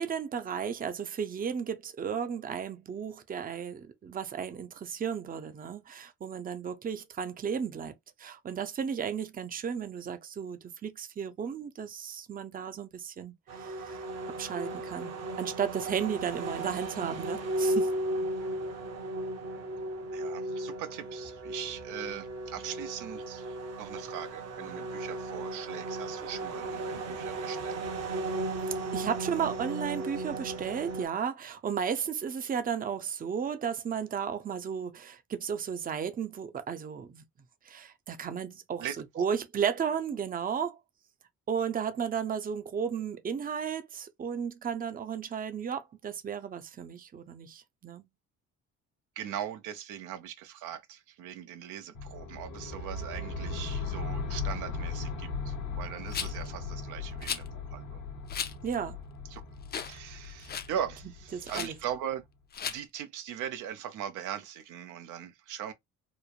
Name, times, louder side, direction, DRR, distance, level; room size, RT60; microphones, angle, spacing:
voice 1, 0.0-7.9 8.2-14.0 14.4-15.1 15.4-17.9 28.9-37.2 37.7-38.9 39.2-40.8 41.5-48.0 58.6-59.0 61.3-61.7, right 7 dB, 30° right, 0.5 m, -34 dB
sound 1, 13.5-31.1, right 2 dB, 60° right, 0.8 m, -35 dB
voice 2, 20.1-27.8 38.8-39.3 49.2-58.0 59.3-59.4 59.8-62.3 62.7-65.7, right 10 dB, 85° right, 0.6 m, -40 dB
sound 2, 51.9-62.0, left 4 dB, 75° left, 0.9 m, -38 dB
Rattle, 56.1-56.5 57.2-57.5 58.3-58.5 59.0-59.1 59.7-60.0 60.2-60.7 61.5-61.7 62.5-62.8, left 7 dB, 35° left, 0.4 m, -35 dB
3.1 x 2.0 x 2.4 m
cardioid pair, 90°, 30 cm